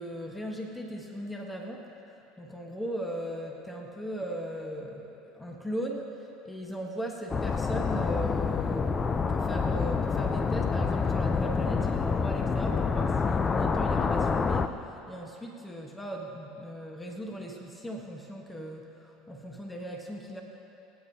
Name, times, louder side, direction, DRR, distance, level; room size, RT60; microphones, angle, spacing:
voice 1, 0.0-1.9 2.4-14.7 15.1-20.4, equal, 10° left, 1 dB, 1.2 m, -38 dB
sound 1, 7.3-14.7, left 5 dB, 25° left, 0.5 m, -27 dB
24.5 x 8.4 x 2.8 m, 2.9 s
hypercardioid pair, 90°, 0 cm